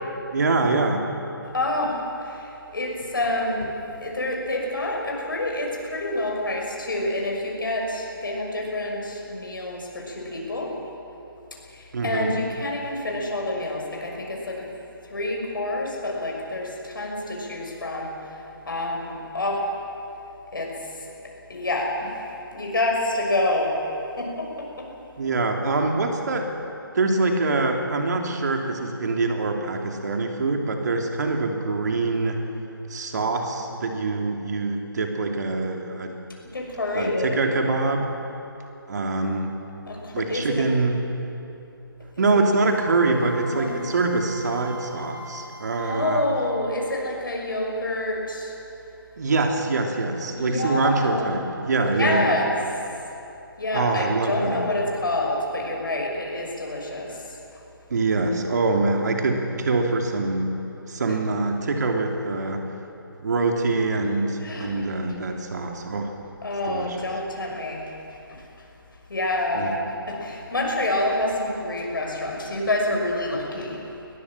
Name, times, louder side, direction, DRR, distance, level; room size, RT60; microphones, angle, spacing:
voice 1, 0.3-1.1 11.9-12.3 25.2-26.5 26.9-32.4 32.9-36.2 36.9-38.1 38.9-39.5 40.1-40.9 42.2-46.2 49.2-52.3 53.7-54.6 57.9-60.5 60.9-62.6 63.2-66.1 66.6-67.1 69.5-69.7, right 3 dB, 50° right, 2 dB, 3.0 m, -24 dB
voice 2, 1.4-3.7 4.0-10.8 11.7-14.7 15.0-18.3 18.7-19.7 20.5-21.1 21.5-22.2 22.5-23.8 24.2-24.9 36.5-37.3 39.9-40.6 42.2-42.3 43.5-43.8 45.8-48.5 50.4-51.3 51.9-52.5 53.6-57.6 64.4-64.7 66.4-68.4 69.1-69.8 70.1-73.8, left 1 dB, 65° left, -1 dB, 6.2 m, -27 dB
Wind instrument woodwind instrument, 42.7-46.9, equal, 65° right, 3.5 m, -41 dB
22.0 x 19.5 x 7.5 m, 2.8 s
figure-of-eight pair, 150°, 12 cm